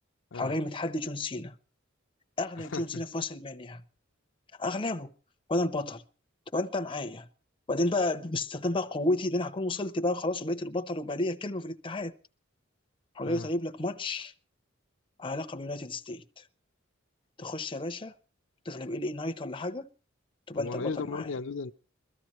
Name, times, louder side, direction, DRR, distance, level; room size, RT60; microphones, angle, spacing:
voice 1, 0.3-1.6 2.4-3.8 4.6-5.1 5.5-6.0 6.5-7.3 7.7-12.1 13.2-14.3 15.2-16.4 17.4-18.1 18.6-19.9 20.5-21.3, left 2 dB, 25° left, 0.7 m, -32 dB
voice 2, 2.7-3.0 13.2-13.5 20.5-21.7, left 4 dB, 65° left, 0.6 m, -35 dB
22.0 x 13.5 x 3.1 m
head